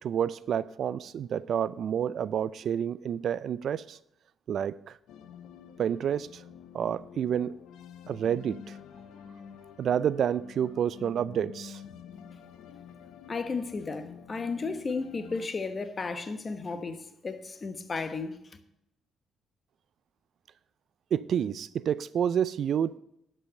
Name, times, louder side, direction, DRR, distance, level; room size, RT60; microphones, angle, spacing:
voice 1, 0.0-4.0 4.5-5.0 5.8-6.4 6.7-7.5 8.1-8.8 9.8-11.8 21.1-23.0, right 9 dB, 65° right, 0.4 m, -29 dB
sound 1, 5.1-15.5, left 7 dB, 85° left, 0.7 m, -48 dB
voice 2, 13.3-18.4, left 4 dB, 35° left, 1.2 m, -34 dB
11.5 x 5.6 x 7.5 m
cardioid pair, 90°, 0 cm